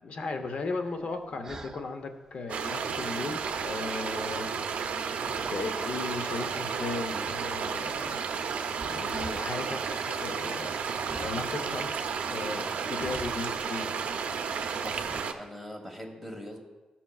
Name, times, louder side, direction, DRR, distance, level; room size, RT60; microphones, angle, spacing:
voice 1, 0.0-4.6 5.2-8.2 8.8-9.8 10.1-10.7 11.2-11.9 12.3-13.9, left 3 dB, 60° left, 5 dB, 0.7 m, -36 dB
sound 1, 0.8-1.9 2.3-4.1 4.4-5.0 5.3-5.7 6.3-6.9 7.2-7.5 7.8-9.5 11.0-11.5 12.1-13.8 14.1-14.4 15.0-15.2, right 2 dB, 25° right, 0.4 m, -47 dB
sound 2, 2.5-15.3, right 6 dB, 85° right, 0.5 m, -32 dB
voice 2, 14.8-16.6, equal, 5° left, 1 dB, 1.3 m, -42 dB
13.5 x 5.8 x 2.3 m, 1.2 s
wide cardioid pair, 130°, 2 cm